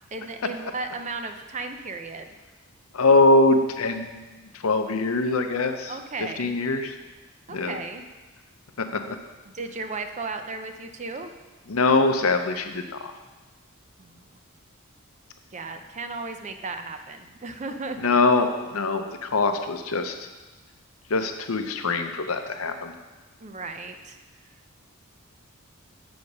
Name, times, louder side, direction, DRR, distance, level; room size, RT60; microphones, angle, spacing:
voice 1, 0.1-2.3 5.9-6.5 7.5-8.0 9.4-11.3 14.0-14.2 15.5-18.0 23.4-24.2, right 3 dB, 35° right, 7 dB, 0.5 m, -35 dB
voice 2, 2.9-4.2 4.6-5.9 6.4-6.9 7.5-7.8 8.9-9.2 11.7-13.1 18.0-20.2 21.1-22.9, left 3 dB, 75° left, 7 dB, 0.7 m, -22 dB
7.0 x 6.5 x 5.3 m, 1.2 s
head